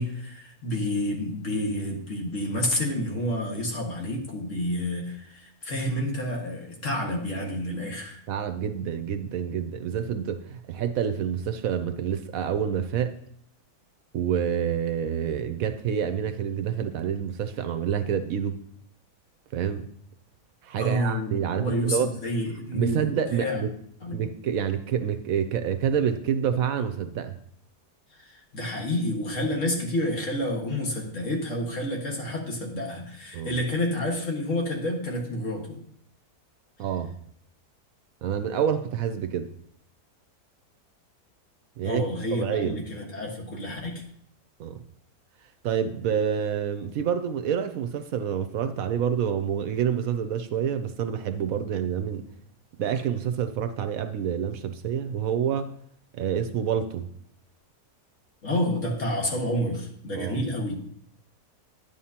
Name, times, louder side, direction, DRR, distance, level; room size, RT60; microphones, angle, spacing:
voice 1, 0.0-8.2 20.8-23.6 24.0-24.2 28.2-35.8 41.8-44.0 58.4-60.8, left 1 dB, 55° left, 0 dB, 2.0 m, -29 dB
voice 2, 8.3-13.1 14.1-18.6 19.5-19.9 20.6-22.1 22.7-23.7 24.1-27.3 33.3-33.6 36.8-37.1 38.2-39.5 41.8-42.1 42.4-42.8 44.6-44.8 45.6-52.3 52.8-55.7 56.1-57.0 60.1-60.4, right 8 dB, 70° right, 9 dB, 1.0 m, -28 dB
11.0 x 9.1 x 2.9 m, 0.65 s
omnidirectional pair, 1.6 m